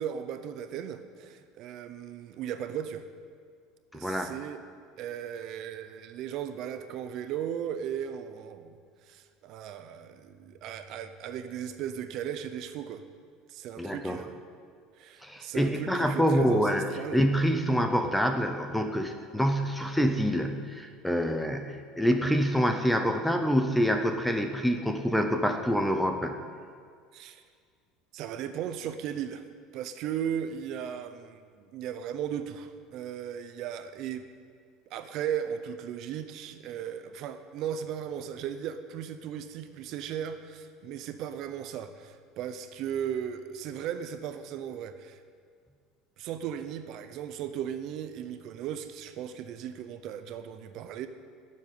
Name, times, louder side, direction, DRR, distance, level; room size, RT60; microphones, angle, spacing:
voice 1, 0.0-3.0 3.9-4.6 5.0-8.7 9.1-13.0 13.5-14.4 15.0-17.2 27.1-27.4 28.1-29.4 29.7-34.3 34.9-45.2 46.2-51.1, right 9 dB, 40° right, 10 dB, 0.7 m, -36 dB
voice 2, 3.9-4.3 13.8-14.2 15.2-16.8 17.1-26.3, equal, ahead, 5 dB, 0.6 m, -26 dB
12.0 x 7.4 x 9.3 m, 2.1 s
cardioid pair, 180°, 0 cm